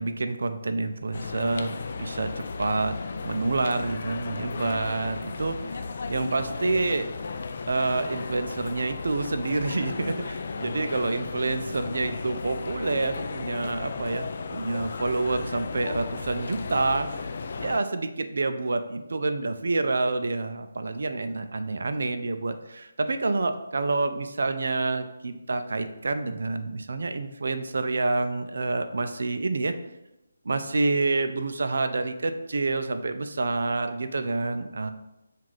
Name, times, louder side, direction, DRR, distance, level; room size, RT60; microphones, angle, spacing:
voice 1, 0.0-2.9 3.2-5.8 6.1-7.0 7.7-17.1 17.6-29.7 30.5-34.9, right 3 dB, 70° right, 8 dB, 0.4 m, -28 dB
sound 1, 1.1-17.8, left 4 dB, 50° left, 0.3 m, -35 dB
5.6 x 2.4 x 3.1 m, 0.91 s
figure-of-eight pair, 160°, 0 cm